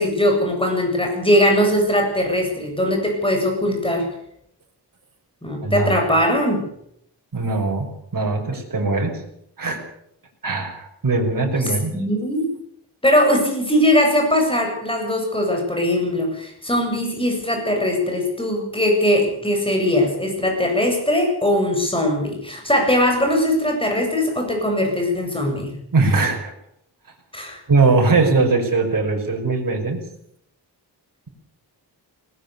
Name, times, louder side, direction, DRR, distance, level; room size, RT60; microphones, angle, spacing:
voice 1, 0.0-4.1 5.4-6.6 11.9-12.5 13.0-25.7 27.3-27.6, left 1 dB, 10° left, 2 dB, 8.0 m, -20 dB
voice 2, 5.6-5.9 7.3-9.2 9.6-9.8 10.4-11.9 25.9-26.5 27.7-30.0, right 3 dB, 50° right, 1 dB, 5.6 m, -20 dB
20.0 x 20.0 x 7.0 m, 0.72 s
wide cardioid pair, 135°, 42 cm